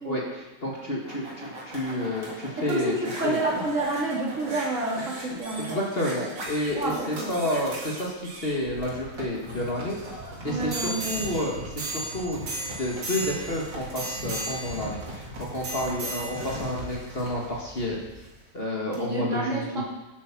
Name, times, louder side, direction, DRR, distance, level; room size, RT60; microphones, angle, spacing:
voice 1, 0.0-2.9 3.2-3.4 5.0-5.1 5.7-10.0 10.4-12.4 12.8-18.0 18.5-19.8, left 1 dB, 35° left, -3 dB, 1.9 m, -30 dB
sound 1, 0.7-18.4 18.9-19.0, right 1 dB, 75° right, 3.1 m, -37 dB
voice 2, 2.6-5.8 6.7-7.3 10.5-11.1 18.9-19.8, right 2 dB, 45° right, -3 dB, 2.4 m, -29 dB
9.9 x 8.4 x 6.0 m, 1.1 s
omnidirectional pair, 1.9 m